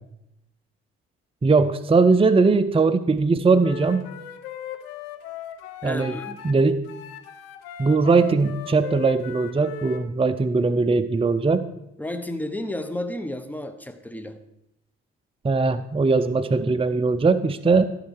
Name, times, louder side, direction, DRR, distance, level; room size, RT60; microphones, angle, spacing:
voice 1, 1.4-4.0 5.8-6.2 6.4-6.8 7.8-11.6 15.4-17.9, right 4 dB, 20° right, 11 dB, 0.6 m, -20 dB
Wind instrument woodwind instrument, 3.6-6.6 6.8-10.0, left 10 dB, 90° left, 0.8 m, -38 dB
voice 2, 5.8-6.4 12.0-14.4, left 1 dB, 5° left, 9 dB, 1.1 m, -32 dB
14.0 x 5.6 x 4.9 m, 0.85 s
hypercardioid pair, 50°, 30 cm